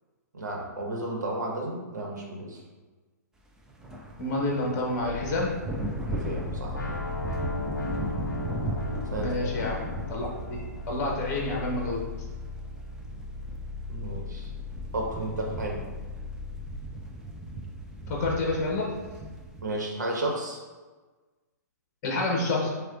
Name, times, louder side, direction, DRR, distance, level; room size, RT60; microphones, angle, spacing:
voice 1, 0.3-2.6 6.1-6.8 9.1-9.3 13.9-14.5 14.9-15.8 19.6-20.6, right 1 dB, 75° right, -1 dB, 1.1 m, -33 dB
sound 1, 3.6-19.6, right 1 dB, 5° right, 0.4 m, -38 dB
voice 2, 4.2-5.6 9.2-10.6 10.9-12.1 18.1-18.9 22.0-22.7, left 2 dB, 30° left, -2 dB, 1.0 m, -28 dB
sound 2, 5.0-16.7, left 4 dB, 40° right, 1.1 m, -39 dB
sound 3, 6.7-12.7, left 2 dB, 80° left, 0.6 m, -38 dB
7.2 x 2.4 x 2.5 m, 1.3 s
figure-of-eight pair, 120°, 10 cm